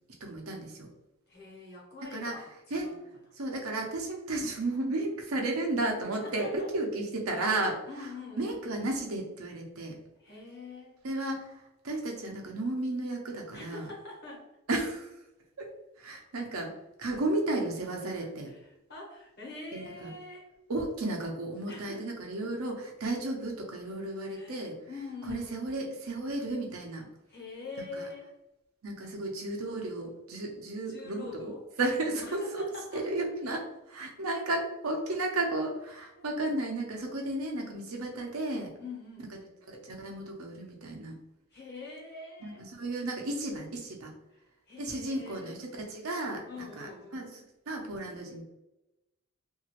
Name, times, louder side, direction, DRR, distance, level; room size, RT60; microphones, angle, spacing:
voice 1, 0.2-0.9 2.1-2.3 2.7-2.9 3.4-8.1 8.4-10.0 11.0-13.9 14.7-15.1 15.6-15.7 16.0-16.7 17.0-18.5 19.7-20.1 20.7-24.8 25.3-27.1 27.8-28.1 28.8-32.7 32.9-38.7 39.7-41.2 42.4-44.1 44.8-47.4 47.7-48.4, right 2 dB, 85° right, 1 dB, 0.7 m, -33 dB
voice 2, 1.3-2.5 2.8-3.0 6.1-6.7 7.8-8.6 10.2-11.0 13.5-14.5 18.2-20.5 21.7-22.0 22.4-22.5 24.3-25.7 27.3-28.3 30.8-31.6 31.9-33.0 33.3-33.4 36.2-36.3 38.8-39.3 41.5-42.7 44.7-45.6 46.5-47.2, left 3 dB, 50° left, -3 dB, 1.1 m, -44 dB
2.9 x 2.6 x 2.9 m, 0.93 s
head